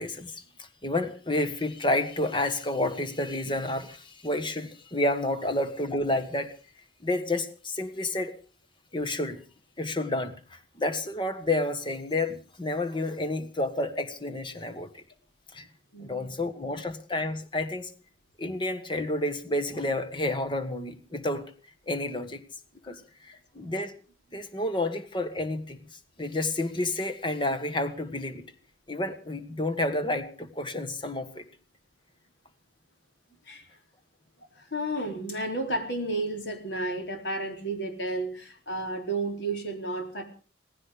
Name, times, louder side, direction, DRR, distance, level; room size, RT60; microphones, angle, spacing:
voice 1, 0.0-6.5 7.0-8.3 8.9-9.4 9.8-15.0 15.5-15.7 16.0-17.9 18.4-21.5 21.9-22.4 22.8-23.9 24.3-25.8 26.2-28.4 28.9-31.5, left 1 dB, 25° left, 9 dB, 1.5 m, -30 dB
voice 2, 15.9-16.5 22.8-23.0 33.4-33.8 34.5-40.2, right 2 dB, 75° left, 4 dB, 4.2 m, -32 dB
18.0 x 15.5 x 5.1 m, 0.38 s
head